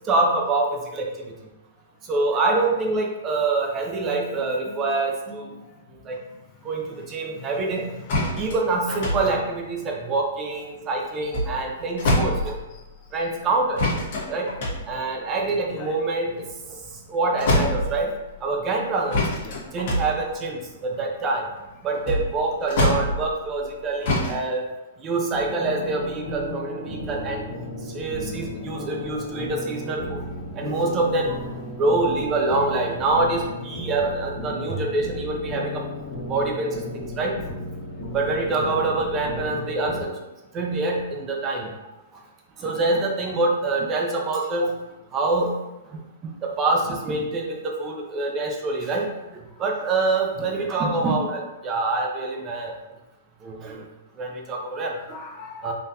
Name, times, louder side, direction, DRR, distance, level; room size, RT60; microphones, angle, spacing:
voice 1, 0.1-1.1 2.1-5.5 6.1-6.2 6.6-7.9 8.4-12.5 13.1-14.0 14.3-14.5 14.9-16.4 17.1-18.1 18.4-19.2 19.7-20.6 21.0-21.5 21.8-24.6 25.0-27.4 27.9-30.2 30.6-31.4 31.8-35.8 36.3-37.4 38.1-40.1 40.5-41.7 42.6-44.7 45.1-45.5 46.4-49.1 49.6-52.7 53.4-53.8 54.2-54.9 55.6-55.7, right 3 dB, 25° right, 1 dB, 0.6 m, -25 dB
voice 2, 4.7-5.7 7.3-8.2 9.3-9.5 11.2-11.4 12.7-12.8 15.5-16.0 19.4-19.6 22.7-23.1 30.0-30.2 38.5-39.1 48.8-48.9 49.6-49.9 50.4-50.7 54.9-55.7, left 4 dB, 30° left, 2 dB, 0.4 m, -41 dB
sound 1, 8.1-10.8 11.1-12.9 13.8-17.1 17.4-18.4 19.1-23.7 24.0-24.4, left 1 dB, 55° left, 1.2 m, -26 dB
sound 2, 25.3-40.0, left 1 dB, 80° left, 1.5 m, -34 dB
3.8 x 2.5 x 2.7 m, 1.0 s
hypercardioid pair, 140°, 0 cm